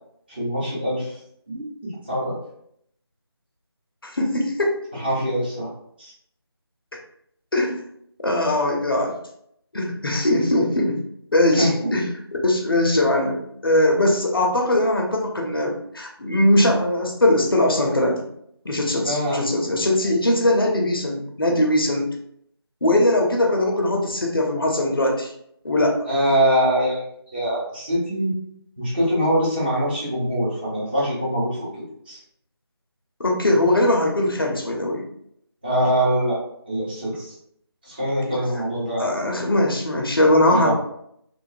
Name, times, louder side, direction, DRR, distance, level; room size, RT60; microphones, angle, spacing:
voice 1, 0.3-1.2 1.5-1.6 2.1-2.4 4.9-5.7 6.0-6.1 11.6-11.7 19.0-19.4 26.1-27.0 27.3-28.3 28.8-32.2 35.6-36.4 36.7-37.3 37.8-39.1 40.5-40.7, equal, 20° right, -10 dB, 0.9 m, -23 dB
voice 2, 4.0-4.8 7.5-7.8 8.2-9.2 9.7-11.0 11.3-18.3 18.6-22.1 22.8-25.3 25.6-26.0 33.2-35.0 39.0-40.7, left 1 dB, 60° left, 1 dB, 0.6 m, -20 dB
2.5 x 2.3 x 2.5 m, 0.72 s
figure-of-eight pair, 165°, 14 cm